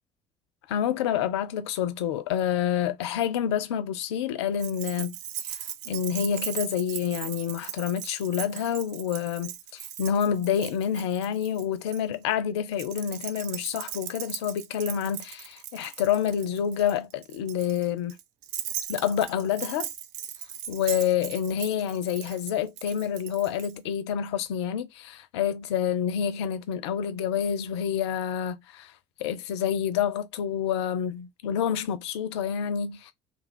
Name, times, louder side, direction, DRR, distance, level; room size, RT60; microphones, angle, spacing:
voice 1, 0.7-5.2 5.4-5.6 5.9-18.2 18.9-19.9 20.7-28.9 29.2-33.1, left 9 dB, 65° left, 0.5 m, -28 dB
Keys jangling, 4.6-12.0 12.7-23.7, right 11 dB, 50° right, 0.5 m, -38 dB
3.5 x 2.1 x 4.2 m
figure-of-eight pair, 55°, 15 cm